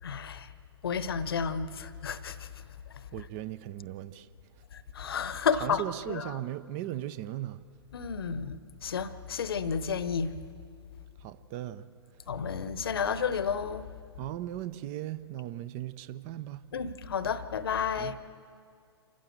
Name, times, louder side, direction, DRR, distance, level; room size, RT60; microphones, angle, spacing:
voice 1, 0.0-0.5 0.8-2.5 2.9-3.0 4.7-6.4 7.9-10.3 12.3-13.9 16.7-18.2, left 6 dB, 60° left, 1.0 m, -32 dB
voice 2, 3.1-4.3 5.6-7.6 11.2-11.8 14.2-16.6 18.0-18.2, right 13 dB, 30° right, 0.7 m, -37 dB
27.5 x 15.0 x 8.0 m
figure-of-eight pair, 110°, 14 cm